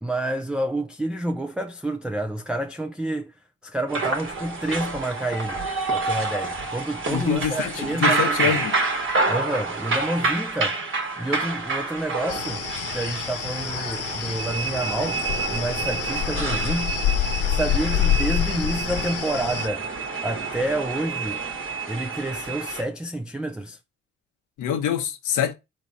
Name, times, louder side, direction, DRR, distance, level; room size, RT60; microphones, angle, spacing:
voice 1, 0.0-3.3 3.6-5.6 5.9-8.6 9.3-10.8 11.2-12.6 12.9-15.2 15.5-16.9 17.5-19.9 20.2-21.4 21.9-23.8, right 1 dB, 5° right, 0.4 m, -29 dB
sound 1, 3.9-22.8, right 3 dB, 45° right, 1.2 m, -28 dB
voice 2, 7.1-8.8 24.6-25.5, left 8 dB, 85° left, 1.2 m, -25 dB
sound 2, 12.3-19.7, left 12 dB, 55° left, 0.5 m, -27 dB
4.0 x 3.2 x 4.1 m
cardioid pair, 90°, 30 cm